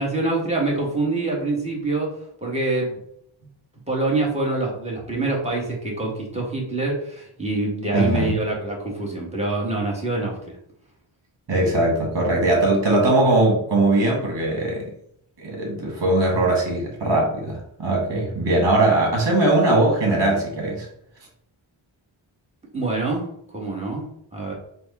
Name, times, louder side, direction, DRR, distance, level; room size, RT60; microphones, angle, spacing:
voice 1, 0.0-2.1 2.4-3.0 3.9-10.4 22.7-24.1 24.3-24.5, right 2 dB, 15° right, -2 dB, 1.5 m, -25 dB
voice 2, 7.9-8.3 11.5-14.9 15.4-20.9, right 2 dB, 60° right, -1 dB, 1.5 m, -20 dB
4.6 x 2.3 x 4.2 m, 0.71 s
wide cardioid pair, 70°, 48 cm